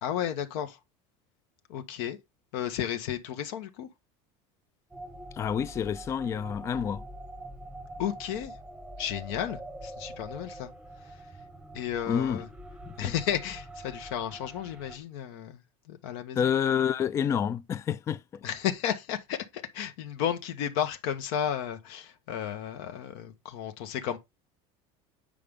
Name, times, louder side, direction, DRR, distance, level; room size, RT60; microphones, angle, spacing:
voice 1, 0.0-0.8 1.7-2.2 2.5-3.9 8.0-8.5 9.0-10.7 11.0-11.2 11.7-12.5 13.0-15.6 15.9-16.5 18.4-24.2, left 9 dB, 70° left, 1.1 m, -33 dB
sound 1, 4.9-15.0, right 1 dB, 5° right, 0.8 m, -44 dB
voice 2, 5.3-7.0 12.1-12.4 12.9-13.1 16.4-18.2, left 8 dB, 20° left, 0.3 m, -28 dB
8.4 x 5.1 x 3.6 m
cardioid pair, 150°, 14 cm